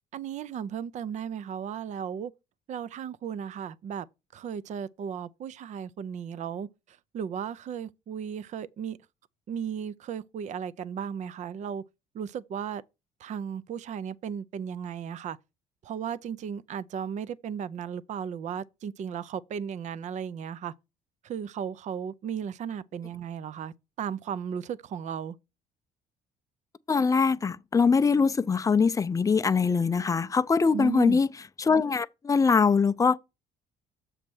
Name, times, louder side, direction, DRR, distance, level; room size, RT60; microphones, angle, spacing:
voice 1, 0.1-2.3 2.7-4.1 4.3-9.0 9.5-11.8 12.1-12.8 13.2-15.4 15.8-20.7 21.2-25.4 30.7-31.2, right 8 dB, 45° right, 0.5 m, -35 dB
voice 2, 26.9-31.3 31.6-33.2, left 5 dB, 20° left, 0.5 m, -23 dB
7.3 x 3.3 x 6.0 m
cardioid pair, 110°, 17 cm